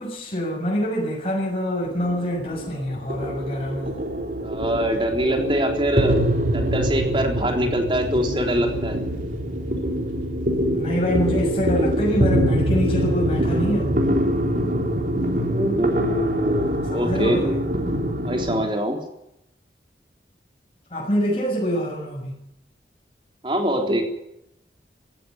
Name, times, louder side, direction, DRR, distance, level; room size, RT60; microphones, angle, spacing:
voice 1, 0.0-3.9 10.7-13.9 16.9-17.6 20.9-22.4, equal, 35° left, -2 dB, 6.7 m, -25 dB
sound 1, 1.8-18.6, equal, 50° right, 3.6 m, -24 dB
voice 2, 4.4-6.2 6.5-9.0 15.5-17.6 18.2-19.0 23.4-24.0, equal, 30° right, 3 dB, 3.9 m, -23 dB
17.0 x 16.5 x 9.7 m, 0.81 s
head